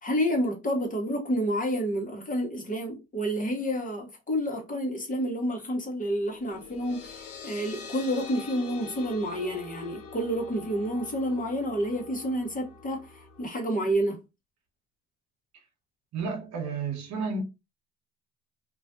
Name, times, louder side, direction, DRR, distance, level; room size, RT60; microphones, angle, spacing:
voice 1, 0.0-14.2, equal, 25° left, 1.0 m, -29 dB
sound 1, 6.3-13.5, left 5 dB, 80° left, 0.7 m, -44 dB
voice 2, 16.1-17.4, right 4 dB, 60° right, 0.9 m, -32 dB
2.4 x 2.2 x 2.4 m
hypercardioid pair, 60°, 32 cm